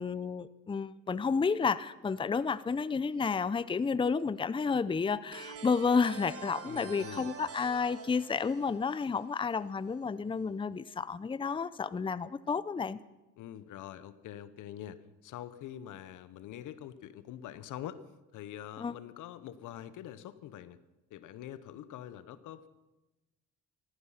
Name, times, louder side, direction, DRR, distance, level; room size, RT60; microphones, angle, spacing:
voice 1, 0.0-13.0 18.8-18.9, left 5 dB, 15° left, 17 dB, 0.5 m, -31 dB
sound 1, 5.3-9.9, right 6 dB, 50° right, 1.5 m, -46 dB
voice 2, 6.7-7.3 13.4-18.0 18.3-20.8 21.1-22.7, left 11 dB, 85° left, 15 dB, 0.9 m, -45 dB
16.5 x 14.5 x 5.7 m, 1.0 s
cardioid pair, 90°, 30 cm